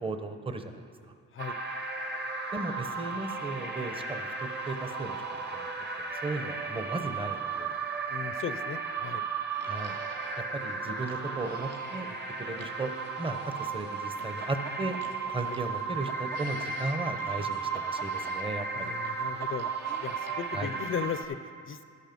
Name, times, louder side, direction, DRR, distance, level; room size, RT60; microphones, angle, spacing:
voice 1, 0.0-0.8 2.5-5.7 6.0-7.7 9.6-9.9 10.5-12.1 12.4-12.9 13.2-15.0 15.3-18.9 20.5-20.7, right 2 dB, 20° right, 7 dB, 0.8 m, -36 dB
sound 1, 1.4-21.2, right 4 dB, 35° right, 1.2 m, -35 dB
voice 2, 8.1-9.2 15.4-15.6 18.7-19.7 20.0-21.8, left 7 dB, 45° left, 12 dB, 0.5 m, -37 dB
sound 2, 9.5-20.5, right 4 dB, 55° right, 1.0 m, -48 dB
12.5 x 8.1 x 5.2 m, 2.4 s
cardioid pair, 90°, 30 cm